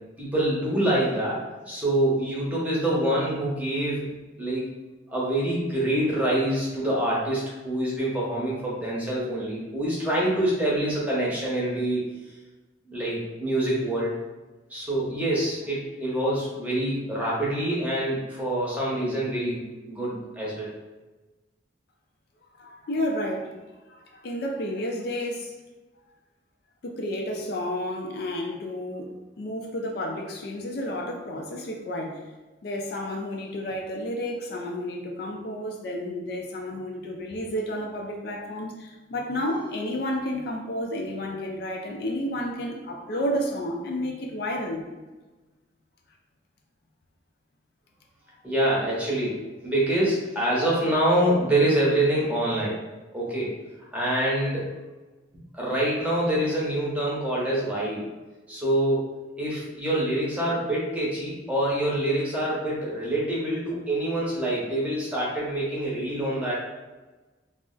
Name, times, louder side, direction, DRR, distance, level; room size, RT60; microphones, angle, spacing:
voice 1, 0.2-4.1 4.4-4.7 5.1-12.1 12.9-14.1 14.7-20.7 48.4-52.8 53.1-53.6 53.9-54.7 55.5-58.1 58.5-66.6, right 1 dB, 10° right, -6 dB, 0.7 m, -26 dB
voice 2, 22.6-23.5 23.9-25.5 26.8-29.1 29.4-32.2 32.6-44.8, left 1 dB, 60° left, 0 dB, 0.4 m, -31 dB
2.4 x 2.0 x 3.7 m, 1.2 s
head